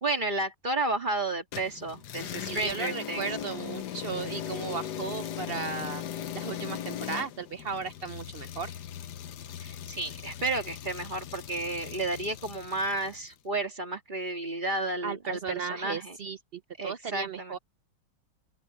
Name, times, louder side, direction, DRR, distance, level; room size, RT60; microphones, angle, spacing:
voice 1, 0.0-3.3 9.6-16.2 16.8-17.6, right 2 dB, 25° right, 2.1 m, -32 dB
sound 1, 1.5-13.3, left 10 dB, 70° left, 1.4 m, -39 dB
voice 2, 2.5-6.0 6.3-8.7 15.0-17.6, right 6 dB, 90° right, 0.5 m, -36 dB
open air
omnidirectional pair, 1.9 m